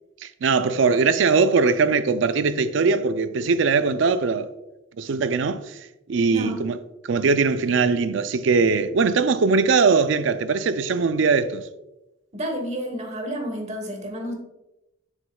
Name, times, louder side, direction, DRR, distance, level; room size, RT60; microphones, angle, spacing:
voice 1, 0.2-4.5 5.0-5.8 6.1-6.8 7.1-11.6, right 4 dB, 65° right, 0.4 m, -21 dB
voice 2, 6.3-6.7 12.3-14.3, equal, 35° right, 1.2 m, -30 dB
7.3 x 6.3 x 2.3 m
head